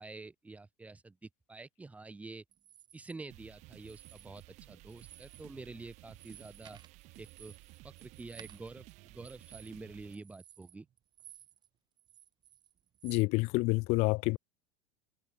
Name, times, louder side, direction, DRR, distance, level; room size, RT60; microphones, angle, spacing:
voice 1, 0.0-2.4 2.9-6.8 7.2-7.5 7.8-10.8, right 3 dB, 10° right, 1.6 m, -48 dB
sound 1, 2.5-3.1 3.8-4.6 4.9-5.5 5.8-11.7 12.0-13.3, right 10 dB, 30° right, 1.8 m, -57 dB
sound 2, 3.3-10.2, right 22 dB, 55° right, 4.6 m, -55 dB
voice 2, 13.0-14.4, left 24 dB, 50° left, 0.5 m, -28 dB
supercardioid pair, 135°, 14 cm